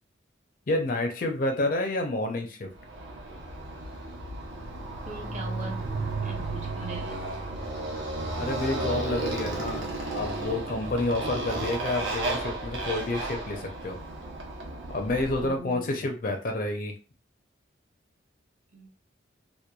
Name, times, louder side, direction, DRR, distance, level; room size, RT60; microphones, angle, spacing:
voice 1, 0.7-2.7 8.4-14.0 14.9-16.9, left 2 dB, 45° left, 4 dB, 0.5 m, -29 dB
Motorcycle, 2.8-15.5, right 2 dB, 70° right, 0.7 m, -33 dB
voice 2, 5.1-5.9 6.2-7.2 15.4-15.9 18.7-18.9, right 1 dB, 35° right, 1 dB, 0.6 m, -41 dB
2.9 x 2.2 x 2.2 m, 0.34 s
head